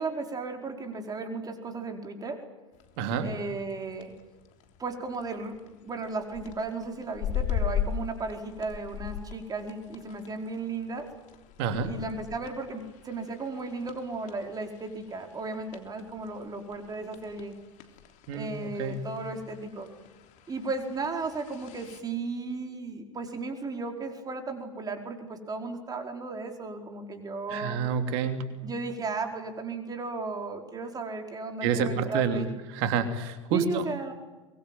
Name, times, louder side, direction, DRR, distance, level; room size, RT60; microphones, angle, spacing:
voice 1, 0.0-2.4 3.2-4.1 4.8-11.1 11.8-17.5 18.3-19.9 20.5-27.8 28.6-32.5 33.5-34.1, right 3 dB, 25° right, 4 dB, 5.0 m, -35 dB
sound 1, 2.7-22.0, left 9 dB, 50° left, 3.4 m, -40 dB
voice 2, 3.0-3.3 11.6-11.9 18.3-19.0 27.5-28.4 31.6-33.8, right 6 dB, 55° right, 7 dB, 3.2 m, -29 dB
24.0 x 22.0 x 9.4 m, 1.2 s
hypercardioid pair, 90°, 17 cm